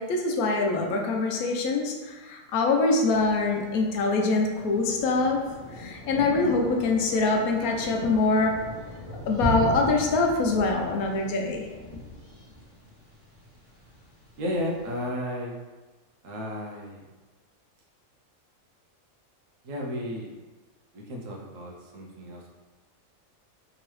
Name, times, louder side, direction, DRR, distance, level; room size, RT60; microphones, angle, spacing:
voice 1, 0.0-5.4 5.8-8.5 9.3-11.7, left 3 dB, 90° left, 1 dB, 1.1 m, -24 dB
Thunder, 3.1-15.0, left 1 dB, 50° right, 1.1 m, -38 dB
voice 2, 14.4-15.6 16.2-17.1 19.6-20.3 20.9-22.5, left 1 dB, 70° right, -1 dB, 1.0 m, -33 dB
3.6 x 3.0 x 3.0 m, 1.2 s
omnidirectional pair, 1.5 m